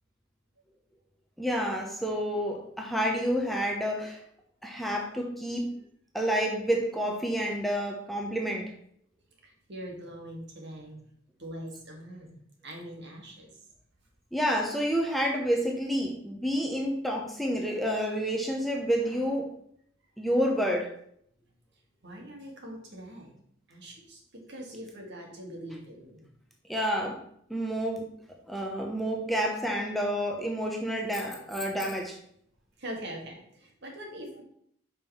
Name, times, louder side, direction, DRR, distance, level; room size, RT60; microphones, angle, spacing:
voice 1, 1.4-4.2 4.6-5.7 6.1-8.7 14.3-19.5 20.2-20.9 26.7-27.2 27.5-28.0 28.5-32.2, equal, ahead, 0 dB, 0.8 m, -29 dB
voice 2, 9.4-11.0 11.4-12.3 12.6-13.5 22.0-23.3 23.7-24.2 24.5-26.2 32.8-34.4, right 1 dB, 60° right, 0 dB, 2.0 m, -42 dB
5.4 x 5.2 x 5.7 m, 0.68 s
head